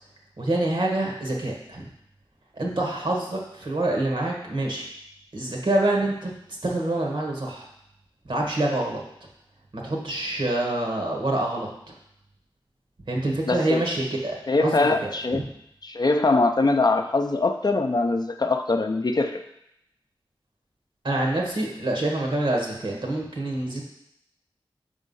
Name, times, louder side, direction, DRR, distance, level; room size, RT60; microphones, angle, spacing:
voice 1, 0.4-1.9 2.5-4.9 5.3-7.7 8.2-9.0 9.7-11.9 13.1-15.5 21.0-23.8, right 1 dB, 60° right, -1 dB, 1.6 m, -26 dB
voice 2, 13.5-13.8 14.5-15.4 15.8-19.4, left 3 dB, 45° left, 5 dB, 0.5 m, -22 dB
5.4 x 3.6 x 5.5 m, 0.78 s
cardioid pair, 45°, 9 cm